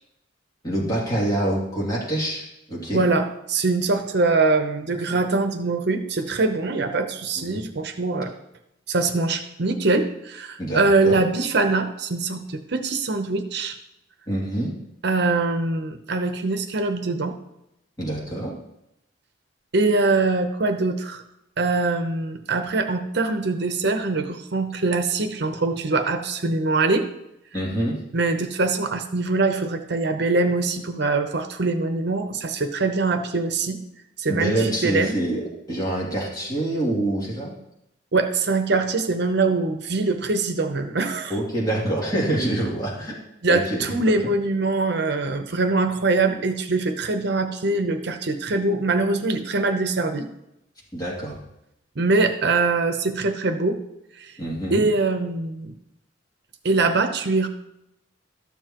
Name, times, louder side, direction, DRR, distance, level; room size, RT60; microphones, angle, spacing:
voice 1, 0.6-3.0 7.4-7.6 10.6-11.2 14.3-14.7 18.0-18.5 27.5-28.0 34.3-37.5 41.3-43.2 43.5-44.0 50.9-51.4 54.4-54.8, right 1 dB, 20° left, -5 dB, 2.7 m, -26 dB
voice 2, 2.9-8.3 8.9-13.8 15.0-17.3 19.7-21.2 21.6-27.1 28.1-33.8 34.2-35.2 38.1-41.3 43.4-50.3 52.0-53.8 54.2-54.3 54.7-55.7 56.6-57.5, right 3 dB, 65° right, 7 dB, 0.8 m, -23 dB
13.0 x 7.1 x 3.0 m, 0.83 s
head